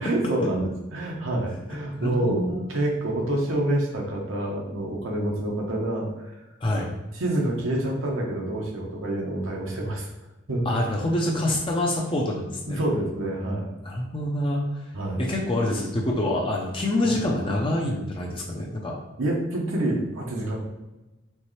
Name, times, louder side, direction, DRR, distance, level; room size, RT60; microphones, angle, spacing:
voice 1, 0.0-6.3 7.1-10.1 10.5-10.8 12.7-13.7 14.9-15.3 19.2-20.6, right 1 dB, 75° right, -2 dB, 1.0 m, -27 dB
voice 2, 2.0-2.6 6.6-6.9 10.6-12.8 13.9-14.8 15.2-19.0, left 1 dB, 25° left, -2 dB, 0.6 m, -26 dB
4.5 x 3.2 x 3.2 m, 1.1 s
head